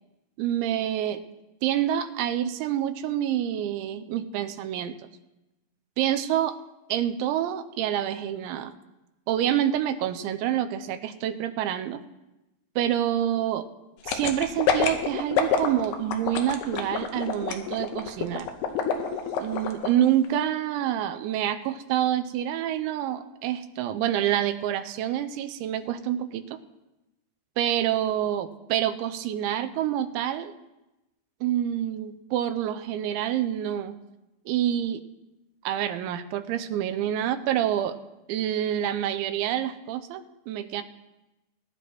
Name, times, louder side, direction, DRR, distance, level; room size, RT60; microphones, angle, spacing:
voice 1, 0.4-1.2 1.6-5.0 6.0-6.6 6.9-8.7 9.3-12.0 12.8-13.7 14.0-18.5 19.4-26.5 27.6-30.5 31.4-34.0 34.5-35.0 35.7-38.0 38.3-40.8, right 11 dB, 90° right, 9 dB, 3.0 m, -27 dB
sound 1, 14.1-19.9 20.2-20.3, left 7 dB, 75° left, 2.8 m, -26 dB
20.5 x 11.0 x 3.0 m, 1.0 s
omnidirectional pair, 5.2 m